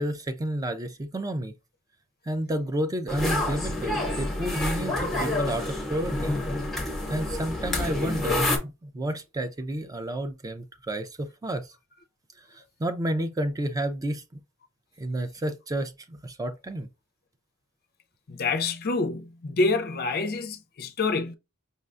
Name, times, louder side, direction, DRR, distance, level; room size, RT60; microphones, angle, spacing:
voice 1, 0.0-1.5 2.3-6.4 7.1-11.8 12.4-14.2 15.0-16.9, right 1 dB, 15° right, 0.3 m, -31 dB
sound 1, 3.1-8.6, left 1 dB, ahead, 0.9 m, -28 dB
voice 2, 18.3-21.4, left 3 dB, 45° left, 0.5 m, -27 dB
5.3 x 2.2 x 2.4 m
head